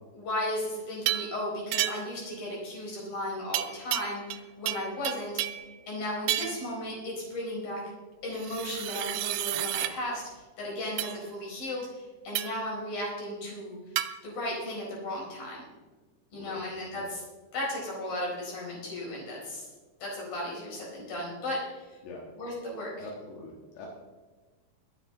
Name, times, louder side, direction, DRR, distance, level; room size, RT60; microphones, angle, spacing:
voice 1, 0.1-5.4 5.9-7.8 8.2-13.8 14.2-15.6 16.3-17.2 17.5-19.7 20.0-22.0 22.4-23.1, left 1 dB, 60° left, -3 dB, 6.1 m, -35 dB
sound 1, 1.1-1.3 1.7-2.2 3.5-4.4 4.7-5.7 6.3-6.7 8.4-9.9 11.0-11.2 12.3-12.7 14.0-14.1, right 14 dB, 80° right, 2.1 m, -31 dB
voice 2, 23.0-23.9, left 3 dB, 85° left, -2 dB, 3.8 m, -44 dB
24.0 x 9.0 x 3.8 m, 1.3 s
omnidirectional pair, 4.7 m